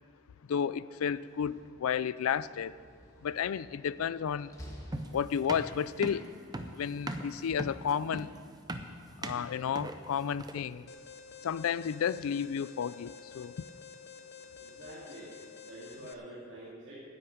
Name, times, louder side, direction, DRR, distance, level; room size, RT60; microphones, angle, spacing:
voice 1, 0.5-2.8 3.2-4.5 5.1-6.3 6.6-8.3 9.2-10.9 11.4-13.5, left 7 dB, 80° left, 18 dB, 0.4 m, -32 dB
Slam, 1.1-5.8, equal, 15° left, 1.3 m, -51 dB
sound 1, 4.9-10.8, right 1 dB, 20° right, 0.6 m, -40 dB
Alarm, 10.9-16.1, left 6 dB, 50° left, 0.7 m, -50 dB
voice 2, 14.6-17.0, right 1 dB, 55° right, -9 dB, 2.6 m, -47 dB
10.0 x 8.6 x 8.5 m, 2.2 s
head